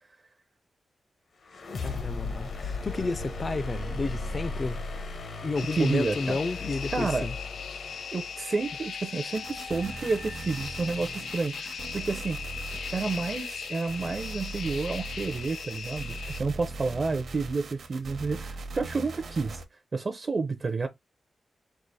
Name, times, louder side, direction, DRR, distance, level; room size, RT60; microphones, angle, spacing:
sound 1, 1.4-11.2, left 3 dB, 60° left, 0.7 m, -37 dB
voice 1, 1.8-4.8 5.4-7.3, left 3 dB, 30° left, 0.4 m, -31 dB
sound 2, 5.6-16.4, left 6 dB, 85° left, 0.4 m, -39 dB
voice 2, 5.6-6.4 6.9-7.3 8.1-12.4 12.9-19.6 19.9-20.9, right 4 dB, 35° right, 0.5 m, -30 dB
sound 3, 9.3-19.6, right 3 dB, 65° right, 0.9 m, -40 dB
4.7 x 2.4 x 3.9 m
wide cardioid pair, 175°, 0 cm